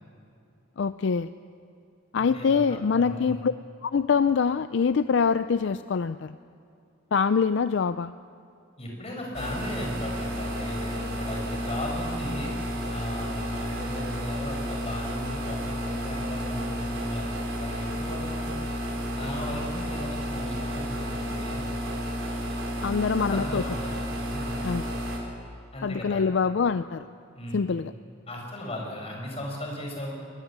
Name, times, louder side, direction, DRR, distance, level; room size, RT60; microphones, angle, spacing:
voice 1, 0.8-1.3 2.1-3.5 3.8-6.3 7.1-8.1 22.8-23.6 24.6-24.8 25.8-27.1 27.5-27.9, left 5 dB, 65° left, 13 dB, 0.4 m, -24 dB
voice 2, 2.2-3.4 8.8-12.5 12.9-17.3 17.6-18.5 19.1-21.6 23.3-24.6 25.7-26.3 27.3-27.8 28.3-30.1, left 1 dB, 30° left, 0 dB, 5.7 m, -36 dB
sound 1, 9.3-25.2, equal, 80° right, 4.3 m, -32 dB
22.0 x 20.0 x 7.4 m, 2.5 s
head